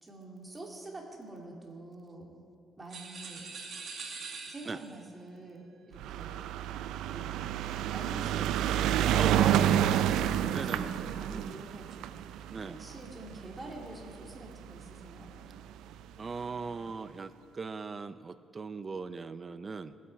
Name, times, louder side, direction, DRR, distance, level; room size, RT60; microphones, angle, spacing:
voice 1, 0.0-2.3 2.8-3.5 4.5-6.4 7.1-7.5 7.9-9.1 9.5-15.3, right 2 dB, 20° right, 0 dB, 2.5 m, -46 dB
sound 1, 2.9-5.1, right 5 dB, 60° right, 1.7 m, -43 dB
sound 2, 6.0-14.5 15.3-15.4 15.6-15.7 15.9-16.0, right 11 dB, 90° right, 0.4 m, -29 dB
voice 2, 9.2-9.6 10.5-10.9 11.3-11.6 12.5-12.8 16.2-20.0, right 4 dB, 35° right, 13 dB, 0.5 m, -39 dB
20.0 x 8.3 x 4.6 m, 2.5 s
cardioid pair, 90°, 0 cm